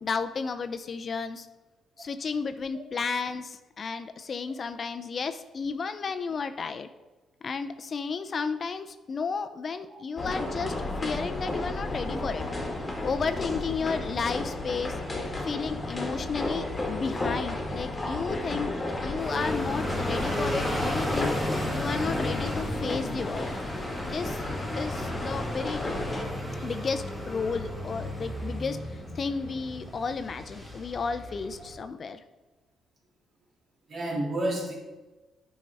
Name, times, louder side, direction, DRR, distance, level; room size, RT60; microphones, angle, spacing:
voice 1, 0.0-1.5 2.0-6.9 7.4-10.8 11.0-12.5 13.0-15.0 15.4-18.7 19.0-21.4 21.7-23.5 24.1-24.4 24.8-25.8 26.6-32.2, left 5 dB, 45° left, 10 dB, 0.5 m, -32 dB
sound 1, 10.2-26.2, left 2 dB, 20° left, 1.7 m, -33 dB
sound 2, 19.2-31.7, left 1 dB, 5° right, 2.0 m, -34 dB
voice 2, 33.9-34.8, right 1 dB, 50° right, -1 dB, 2.2 m, -32 dB
9.7 x 5.4 x 3.4 m, 1.1 s
cardioid pair, 90°, 0 cm